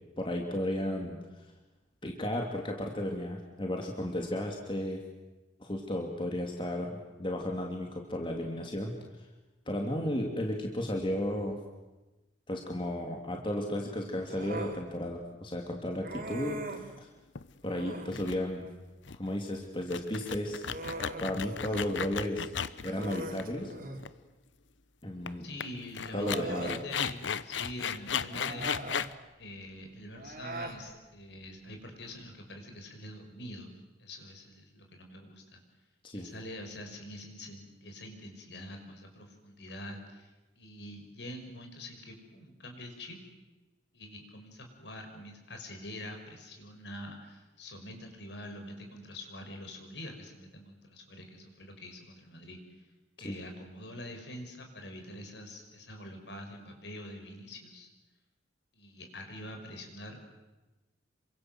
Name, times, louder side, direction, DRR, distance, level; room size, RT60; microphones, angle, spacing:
voice 1, 0.2-1.2 2.0-5.0 5.6-8.9 9.7-11.6 12.5-17.1 17.6-18.7 19.2-20.7 21.2-22.5 22.8-23.7 25.0-25.5 26.1-26.8 36.0-36.3 53.2-53.4, left 1 dB, 25° left, 2 dB, 2.6 m, -34 dB
Human voice, 14.3-14.8 16.0-16.9 17.6-18.2 20.1-21.9 22.2-22.4 22.8-24.1 25.3-25.4 26.0-26.9 28.3-29.1 30.1-30.8, right 2 dB, 50° right, 3.9 m, -41 dB
sound 1, 17.4-17.7 18.1-18.4 18.7-18.8 19.1-19.3 19.8-23.7 24.0-24.1 25.3-25.4 25.6-25.7 25.9-29.1, left 7 dB, 80° left, 0.9 m, -35 dB
voice 2, 25.4-29.0 29.4-35.6 36.1-40.3 40.6-43.2 43.9-52.6 53.2-57.9 58.7-60.2, left 1 dB, 65° left, 4 dB, 5.8 m, -45 dB
28.0 x 24.5 x 7.8 m, 1.1 s
head